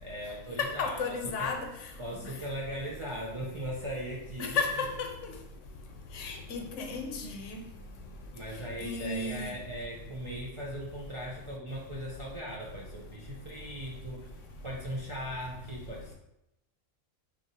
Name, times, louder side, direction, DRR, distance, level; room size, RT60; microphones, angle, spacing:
voice 1, 0.0-1.5 2.0-4.6 8.3-14.3 14.6-16.1, equal, 40° right, -4 dB, 0.4 m, -39 dB
voice 2, 0.6-1.7 4.4-5.3 6.1-7.6 8.8-9.5, left 4 dB, 75° left, 3 dB, 1.0 m, -33 dB
6.0 x 2.8 x 2.9 m, 0.85 s
omnidirectional pair, 1.3 m